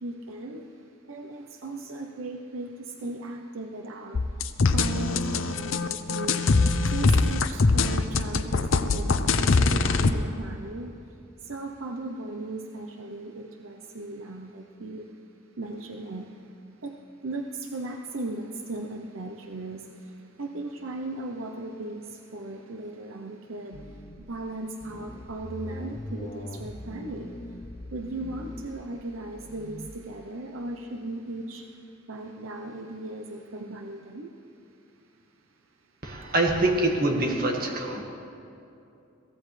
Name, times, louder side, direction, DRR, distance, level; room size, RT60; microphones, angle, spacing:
voice 1, 0.0-0.7 1.1-4.2 4.7-6.5 6.9-10.9 11.4-15.1 15.6-16.3 16.8-17.0 17.2-19.9 20.4-23.8 24.3-27.3 27.9-31.6 32.1-34.3, right 2 dB, 75° right, 4 dB, 0.8 m, -37 dB
sound 1, 4.1-10.1, left 3 dB, 70° left, 0.7 m, -23 dB
sound 2, 23.7-24.4 24.8-29.9, left 1 dB, 30° left, 0.7 m, -41 dB
voice 2, 36.0-38.0, right 1 dB, 45° right, 1 dB, 1.6 m, -25 dB
22.5 x 16.0 x 3.3 m, 2.7 s
head